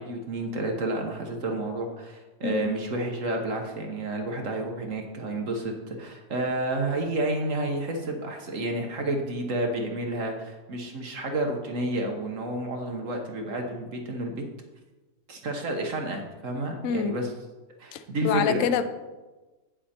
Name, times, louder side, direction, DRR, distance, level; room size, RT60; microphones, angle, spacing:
voice 1, 0.0-14.4 15.3-17.3 17.8-18.7, right 1 dB, 55° right, 3 dB, 1.4 m, -30 dB
voice 2, 16.8-17.2 17.9-18.8, left 7 dB, 65° left, 10 dB, 0.9 m, -26 dB
8.9 x 7.6 x 4.3 m, 1.2 s
omnidirectional pair, 1.7 m